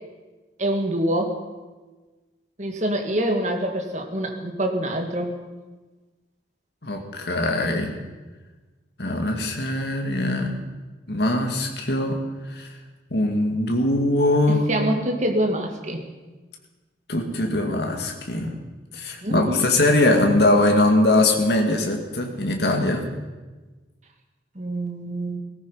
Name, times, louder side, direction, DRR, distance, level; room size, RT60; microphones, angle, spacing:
voice 1, 0.6-1.3 2.6-5.3 14.5-16.0 19.2-19.6 24.6-25.4, right 1 dB, 40° right, 3 dB, 2.0 m, -25 dB
voice 2, 6.8-7.9 9.0-10.6 11.1-12.2 12.5-12.7 13.1-14.7 17.1-18.6 18.9-23.0, left 2 dB, 60° left, 3 dB, 2.2 m, -21 dB
17.5 x 14.5 x 5.7 m, 1.3 s
head